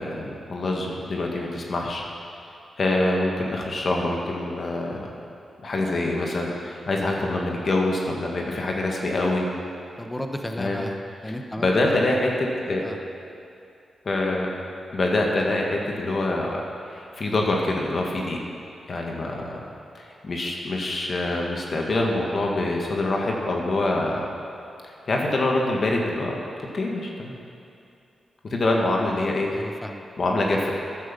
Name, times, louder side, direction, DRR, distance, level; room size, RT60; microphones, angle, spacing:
voice 1, 0.0-2.0 2.8-5.1 5.6-9.5 10.6-10.8 11.6-12.8 14.1-14.5 14.9-16.6 16.9-18.4 18.9-19.7 20.0-24.3 24.8-26.3 26.7-27.3 28.5-29.5 30.2-30.7, left 2 dB, 55° left, -1 dB, 2.0 m, -25 dB
voice 2, 10.0-11.0 11.2-12.3 12.8-13.0 29.5-30.0, left 1 dB, 15° left, 5 dB, 1.2 m, -34 dB
13.0 x 10.5 x 5.5 m, 2.6 s
cardioid pair, 55°, 0 cm